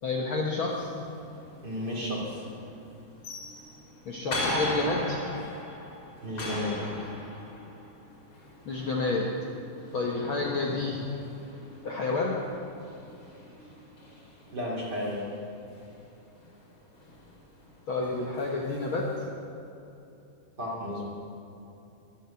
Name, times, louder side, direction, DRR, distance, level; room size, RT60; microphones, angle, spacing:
voice 1, 0.0-1.0 4.0-5.2 5.4-5.5 8.6-9.4 9.9-11.1 11.8-12.4 17.9-19.1, left 3 dB, 80° left, -2 dB, 1.1 m, -29 dB
sound 1, 0.7-19.3, left 1 dB, 35° left, 3.5 m, -40 dB
voice 2, 1.5-2.4 6.2-6.8 14.4-15.3 20.6-21.1, left 1 dB, 30° right, -3 dB, 2.8 m, -33 dB
22.5 x 7.9 x 7.1 m, 2.8 s
omnidirectional pair, 4.3 m